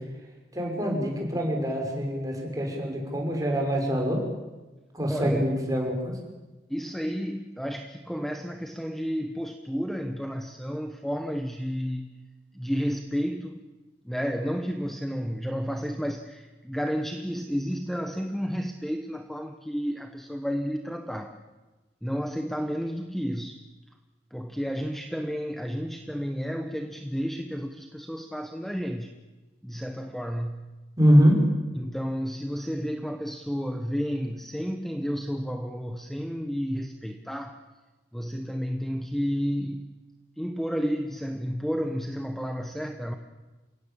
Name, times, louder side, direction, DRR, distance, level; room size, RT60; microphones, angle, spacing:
voice 1, 0.5-4.2 4.9-6.1 31.0-31.3, equal, 20° right, 0 dB, 6.3 m, -24 dB
voice 2, 5.1-5.5 6.7-12.2 12.5-13.6 14.0-21.4 22.0-23.6 24.3-29.1 29.6-30.7 31.7-37.6 38.1-39.9 40.4-43.1, equal, ahead, 5 dB, 1.2 m, -31 dB
28.5 x 17.0 x 8.8 m, 1.2 s
head